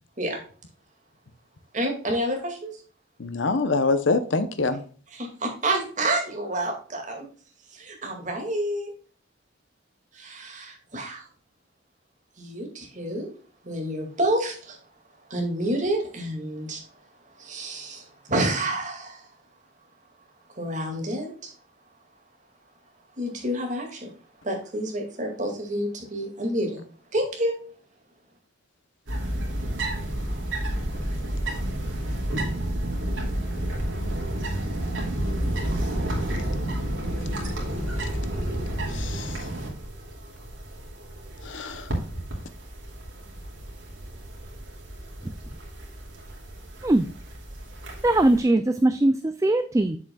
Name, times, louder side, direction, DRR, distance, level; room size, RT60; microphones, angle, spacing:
voice 1, 1.7-2.7 5.1-7.2 7.7-8.9 10.1-11.3 12.4-13.3 13.6-14.8 15.3-16.8 17.4-19.3 20.6-21.5 23.2-24.1 24.4-26.8 27.1-27.5, right 1 dB, 40° right, 2.2 m, -29 dB
voice 2, 3.2-4.8 38.9-39.3 41.4-41.9, left 3 dB, 70° left, 0.8 m, -25 dB
sound 1, 29.1-48.4, right 1 dB, 75° right, 2.5 m, -31 dB
voice 3, 48.0-50.0, right 1 dB, 15° right, 0.3 m, -20 dB
7.9 x 7.0 x 2.3 m
head